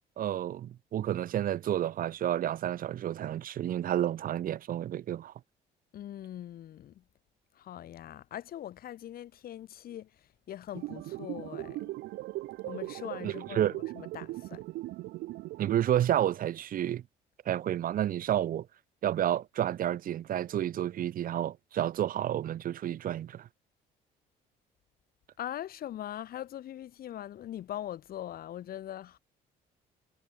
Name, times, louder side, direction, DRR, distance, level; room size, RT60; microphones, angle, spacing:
voice 1, 0.2-5.3 13.2-13.7 15.6-17.0 17.4-18.7 19.0-23.5, right 11 dB, 55° right, 1.4 m, -30 dB
voice 2, 5.9-7.0 7.6-11.9 12.6-14.6 25.4-29.2, left 11 dB, 60° left, 5.2 m, -41 dB
sound 1, 10.7-15.7, right 18 dB, 80° right, 1.1 m, -39 dB
cardioid pair, 110°, 17 cm